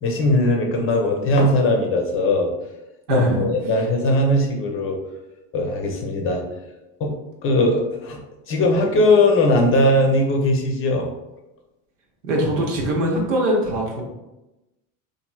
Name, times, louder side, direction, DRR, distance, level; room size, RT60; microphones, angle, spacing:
voice 1, 0.0-2.5 3.1-5.0 5.5-6.4 7.0-7.1 7.4-8.2 8.5-11.1, left 1 dB, 35° left, 1 dB, 0.6 m, -19 dB
voice 2, 3.1-3.5 12.2-14.0, right 1 dB, 80° right, -1 dB, 1.0 m, -21 dB
3.0 x 2.6 x 2.3 m, 0.98 s
supercardioid pair, 100°, 37 cm